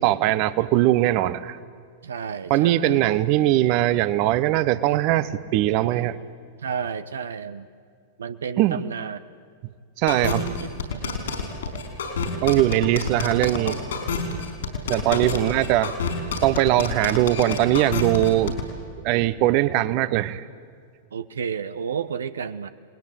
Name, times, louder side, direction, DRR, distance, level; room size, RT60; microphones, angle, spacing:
voice 1, 0.0-1.6 2.5-6.2 8.6-8.8 10.0-10.4 12.4-13.8 14.9-16.0 16.4-18.6 19.0-20.4, right 14 dB, 50° right, 15 dB, 0.9 m, -21 dB
voice 2, 2.0-3.0 6.6-7.7 8.2-9.2 10.1-10.5 10.9-11.4 15.2-15.5 21.1-22.7, right 7 dB, 75° right, 12 dB, 0.9 m, -32 dB
sound 1, 10.1-18.6, left 5 dB, 70° left, 5.2 m, -28 dB
29.5 x 20.0 x 9.0 m, 2.1 s
figure-of-eight pair, 100°, 0 cm